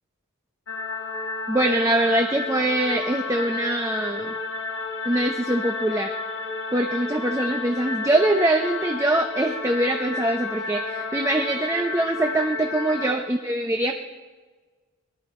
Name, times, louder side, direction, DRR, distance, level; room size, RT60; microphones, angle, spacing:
sound 1, 0.7-13.1, left 3 dB, 60° left, 1.5 m, -31 dB
voice 1, 1.5-4.3 5.0-6.1 6.7-13.9, right 1 dB, 15° right, 3 dB, 0.7 m, -23 dB
20.5 x 12.5 x 4.3 m, 1.4 s
head